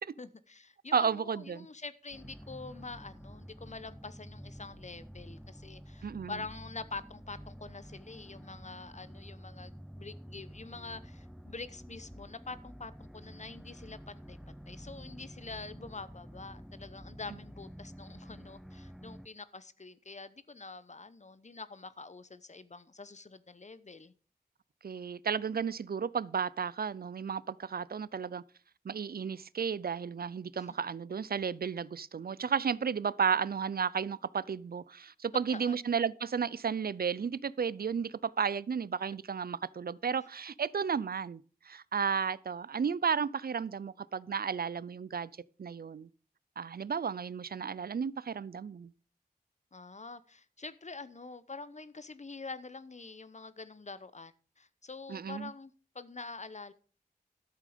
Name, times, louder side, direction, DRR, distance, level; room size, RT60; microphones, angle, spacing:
voice 1, 0.2-14.4 14.7-24.1 30.6-30.7 35.5-35.8 49.7-56.7, left 3 dB, 50° left, 0.8 m, -46 dB
voice 2, 0.9-1.7 6.0-6.3 24.8-28.4 28.8-45.3 45.6-46.1 46.6-48.9 55.1-55.5, right 6 dB, 75° right, 0.4 m, -33 dB
sound 1, 2.1-19.3, equal, ahead, 0.5 m, -49 dB
13.0 x 7.5 x 5.0 m
wide cardioid pair, 70°, 16 cm